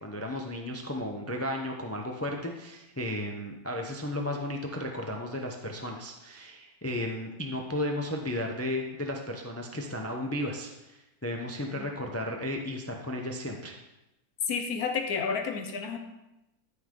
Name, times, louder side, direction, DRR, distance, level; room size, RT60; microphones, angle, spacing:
voice 1, 0.0-13.8, left 1 dB, 15° left, 2 dB, 0.5 m, -34 dB
voice 2, 14.5-16.0, left 5 dB, 80° left, 5 dB, 1.5 m, -31 dB
12.5 x 5.6 x 3.8 m, 0.95 s
omnidirectional pair, 1.6 m